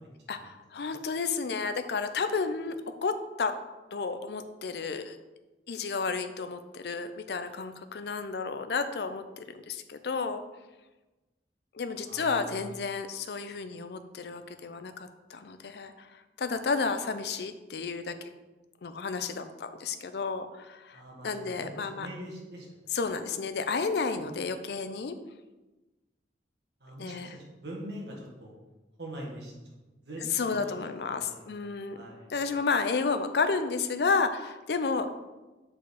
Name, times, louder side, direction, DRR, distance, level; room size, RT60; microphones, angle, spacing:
voice 1, 0.3-2.8 3.0-3.6 3.9-5.2 5.7-10.4 11.7-18.2 18.8-22.1 22.9-25.1 27.0-27.4 30.2-32.0 32.3-35.3, left 4 dB, 60° left, 9 dB, 0.5 m, -32 dB
voice 2, 12.0-12.6 20.9-23.0 24.1-24.2 26.8-28.6 29.0-29.5 30.1-30.7 31.1-32.3, right 1 dB, 70° right, -2 dB, 1.7 m, -43 dB
6.4 x 4.5 x 4.1 m, 1.1 s
head